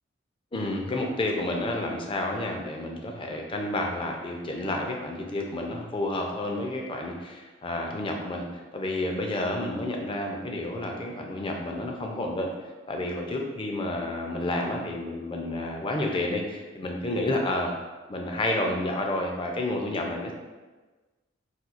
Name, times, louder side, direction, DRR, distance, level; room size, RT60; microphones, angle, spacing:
voice 1, 0.5-8.5 8.7-12.5 12.9-17.7 18.1-20.3, left 1 dB, 25° left, 1 dB, 0.4 m, -30 dB
4.2 x 2.2 x 2.4 m, 1.3 s
head